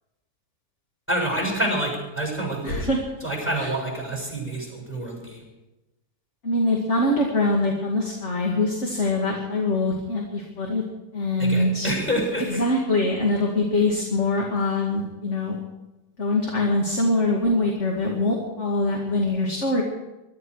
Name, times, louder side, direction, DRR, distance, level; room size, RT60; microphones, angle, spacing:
voice 1, 1.1-2.9 3.2-5.4 11.4-12.6, right 1 dB, 5° left, -1 dB, 6.8 m, -27 dB
voice 2, 2.6-3.0 3.6-3.7 6.4-10.9 11.1-11.9 12.5-15.6 16.2-19.8, left 2 dB, 45° left, -1 dB, 2.5 m, -23 dB
23.0 x 13.0 x 4.8 m, 1.0 s
omnidirectional pair, 1.7 m